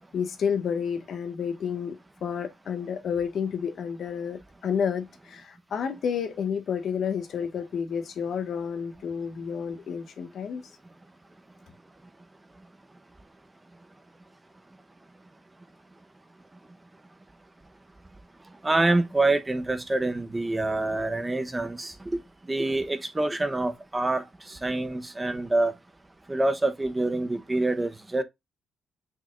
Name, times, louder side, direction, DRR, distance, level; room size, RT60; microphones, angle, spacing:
voice 1, 0.1-10.6, left 7 dB, 60° left, 1.7 m, -30 dB
voice 2, 18.6-25.8 26.3-28.2, right 2 dB, 15° right, 1.0 m, -26 dB
6.6 x 6.2 x 2.6 m
cardioid pair, 110°, 0 cm